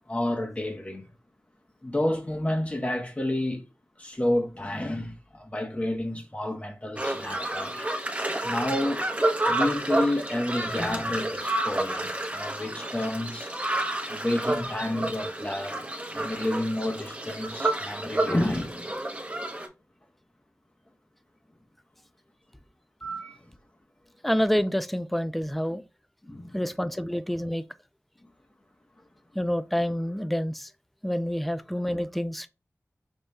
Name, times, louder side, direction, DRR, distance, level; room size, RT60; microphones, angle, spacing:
voice 1, 0.1-1.1 1.8-3.6 4.0-7.9 8.4-9.0 9.5-13.5 14.1-15.8 16.1-18.9 23.0-23.4 26.2-26.7, left 1 dB, 25° left, 0.8 m, -30 dB
sound 1, 7.0-19.7, right 1 dB, 25° right, 0.8 m, -30 dB
voice 2, 24.2-25.8 26.5-27.6 29.4-30.7 31.0-32.5, equal, ahead, 0.3 m, -27 dB
5.3 x 2.3 x 3.2 m
wide cardioid pair, 80°, 6 cm